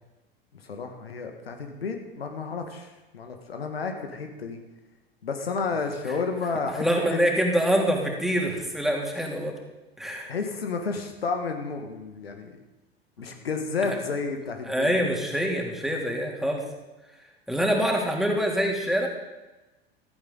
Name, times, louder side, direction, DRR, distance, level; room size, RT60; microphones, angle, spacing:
voice 1, 0.6-4.6 5.2-7.2 10.3-12.6 13.2-14.9, left 4 dB, 75° left, 5 dB, 1.7 m, -31 dB
voice 2, 6.8-9.5 10.0-10.3 13.9-14.0 14.7-16.6 17.5-19.1, equal, ahead, 0 dB, 3.0 m, -25 dB
16.0 x 14.0 x 4.0 m, 1.1 s
figure-of-eight pair, 80°, 31 cm